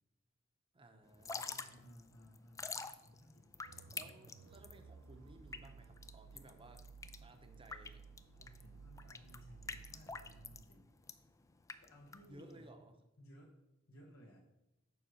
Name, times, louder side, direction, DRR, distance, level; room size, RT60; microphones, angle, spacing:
voice 1, 0.7-1.6 3.9-6.8 7.2-8.0 12.3-13.0, right 2 dB, 25° right, 6 dB, 0.8 m, -58 dB
Drip / Trickle dribble, 1.1-12.7, left 4 dB, 15° left, 0.3 m, -48 dB
voice 2, 1.5-3.8 8.4-10.9 11.8-12.7 13.2-13.5 13.9-14.4, equal, 80° left, -2 dB, 1.1 m, -59 dB
sound 1, 3.6-10.6, right 5 dB, 70° right, 0.5 m, -57 dB
7.0 x 4.9 x 6.3 m, 0.94 s
head